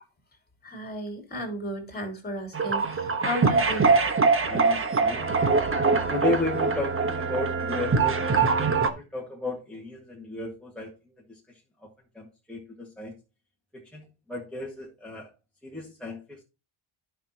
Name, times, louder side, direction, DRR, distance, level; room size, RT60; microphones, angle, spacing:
voice 1, 0.6-4.0, equal, 20° left, 3.2 m, -34 dB
sound 1, 2.5-8.9, right 4 dB, 25° right, 1.2 m, -23 dB
voice 2, 4.5-5.4 6.1-10.9 11.3-11.9 12.1-13.1 13.7-15.3 15.6-16.4, left 2 dB, ahead, 1.8 m, -34 dB
12.0 x 5.9 x 2.9 m
cardioid pair, 135°, 50 cm